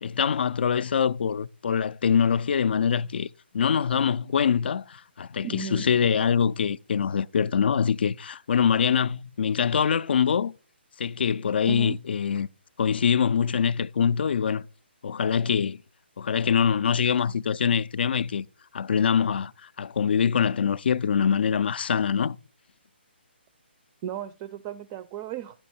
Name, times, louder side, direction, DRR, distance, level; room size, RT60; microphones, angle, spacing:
voice 1, 0.0-3.3 3.5-10.6 11.0-12.5 12.8-14.7 15.0-15.8 16.2-18.5 18.7-22.4, left 7 dB, 60° left, 0.3 m, -24 dB
voice 2, 5.4-5.9 11.7-12.0 24.0-25.6, right 9 dB, 25° right, 0.4 m, -35 dB
10.5 x 5.6 x 4.2 m
figure-of-eight pair, 140°, 6 cm